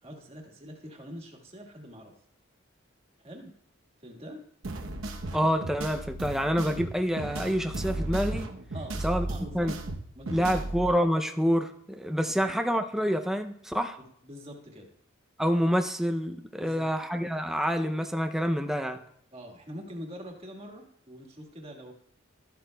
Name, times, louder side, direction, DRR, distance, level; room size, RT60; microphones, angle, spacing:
voice 1, 0.0-2.1 3.2-3.5 4.0-4.4 8.7-9.8 10.1-10.7 12.2-12.6 14.0-14.9 16.5-16.9 19.3-21.9, equal, 30° right, 2 dB, 1.6 m, -44 dB
sound 1, 4.6-10.9, right 2 dB, 80° right, 0.9 m, -35 dB
voice 2, 5.3-8.5 9.0-9.3 9.5-9.8 10.3-14.0 15.4-19.0, equal, ahead, 6 dB, 0.5 m, -27 dB
13.0 x 11.5 x 2.3 m, 0.71 s
head